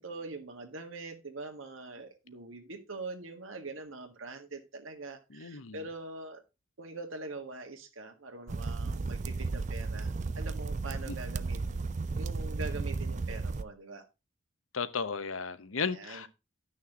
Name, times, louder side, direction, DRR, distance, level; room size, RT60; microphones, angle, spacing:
voice 1, 0.0-6.4 6.8-11.9 12.1-14.0 15.9-16.2, right 3 dB, 85° right, 1.7 m, -43 dB
voice 2, 5.3-5.8 11.1-11.2 14.7-16.3, left 5 dB, 85° left, 0.9 m, -34 dB
sound 1, 8.5-13.6, right 3 dB, 35° right, 0.4 m, -34 dB
11.0 x 6.4 x 3.8 m
head